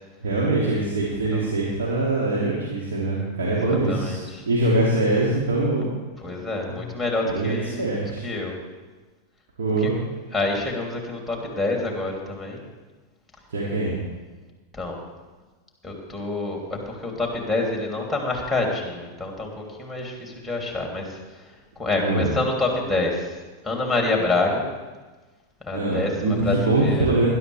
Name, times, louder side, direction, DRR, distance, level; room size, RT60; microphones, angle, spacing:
voice 1, 0.2-5.8 6.7-6.8 7.2-8.3 9.6-9.9 13.5-13.9 22.0-22.3 25.7-27.3, right 2 dB, 60° right, -5 dB, 2.6 m, -23 dB
voice 2, 3.5-4.4 6.2-8.5 9.8-9.9 10.3-12.6 14.7-15.0 15.8-21.2 21.8-23.4 23.6-24.6 25.7-27.2, left 2 dB, ahead, 1 dB, 3.0 m, -27 dB
20.0 x 11.0 x 3.4 m, 1.3 s
figure-of-eight pair, 90°, 0 cm